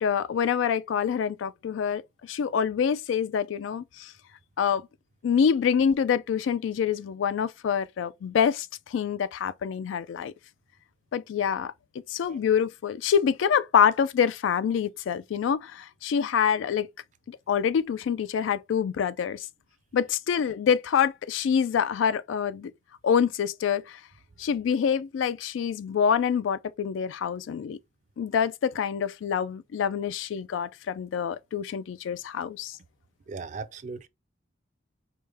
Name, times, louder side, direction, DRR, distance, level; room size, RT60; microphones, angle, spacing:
voice 1, 0.0-4.1 4.6-4.9 5.2-10.3 11.1-11.7 12.1-16.9 17.3-19.5 19.9-22.7 23.0-24.0 24.4-27.8 28.2-32.8, left 7 dB, 80° left, 0.3 m, -26 dB
voice 2, 33.3-34.1, right 4 dB, 40° right, 0.4 m, -38 dB
4.8 x 2.1 x 3.3 m
head